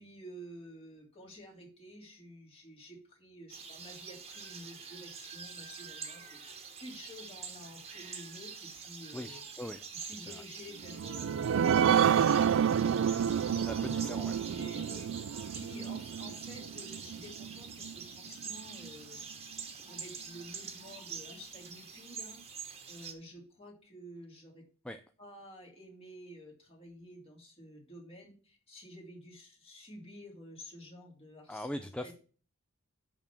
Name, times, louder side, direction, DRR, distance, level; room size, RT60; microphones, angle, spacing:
voice 1, 0.0-9.7 9.9-14.1 14.5-15.1 15.5-19.6 19.9-22.4 22.9-24.6 25.2-31.7 32.0-32.1, equal, 30° left, -1 dB, 2.8 m, -51 dB
sound 1, 3.5-23.1, right 6 dB, 30° right, 1.3 m, -46 dB
voice 2, 9.1-9.8 10.2-10.3 13.7-14.4 24.8-25.0 31.5-32.1, left 1 dB, 5° left, 7 dB, 0.4 m, -40 dB
sound 2, 10.8-17.9 18.4-18.5 18.8-18.9, right 8 dB, 65° right, 0.3 m, -29 dB
10.5 x 3.7 x 7.0 m, 0.39 s
head